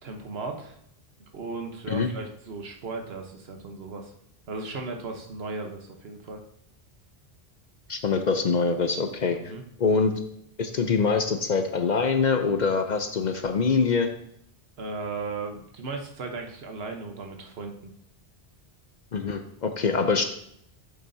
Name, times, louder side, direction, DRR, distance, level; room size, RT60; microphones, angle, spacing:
voice 1, 0.0-0.8 1.2-4.1 4.5-6.4 9.4-9.6 14.8-17.9, right 3 dB, 70° right, 4 dB, 1.2 m, -36 dB
voice 2, 7.9-9.5 9.8-10.1 10.6-14.1 19.1-20.2, left 5 dB, 50° left, 6 dB, 0.6 m, -24 dB
7.9 x 7.3 x 2.7 m, 0.72 s
omnidirectional pair, 1.1 m